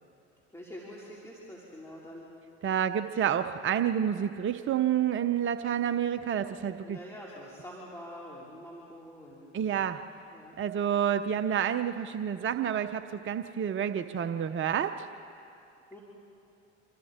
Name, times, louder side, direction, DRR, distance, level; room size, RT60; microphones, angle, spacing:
voice 1, 0.5-2.3 6.8-9.9 10.3-10.6 15.9-16.0, equal, 10° left, -5 dB, 4.1 m, -46 dB
voice 2, 2.6-7.0 9.5-10.0 10.6-15.1, right 9 dB, 35° right, 8 dB, 0.8 m, -29 dB
27.0 x 25.0 x 4.4 m, 2.7 s
hypercardioid pair, 70°, 34 cm